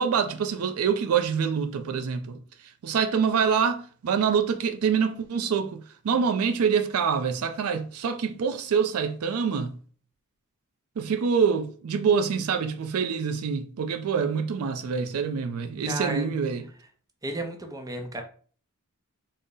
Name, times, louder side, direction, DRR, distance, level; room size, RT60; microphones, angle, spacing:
voice 1, 0.0-2.4 2.8-9.7 11.0-16.6, right 6 dB, 80° right, 0.4 m, -25 dB
voice 2, 15.8-16.3 17.2-18.2, right 1 dB, 15° right, 0.5 m, -33 dB
3.9 x 2.0 x 3.6 m
head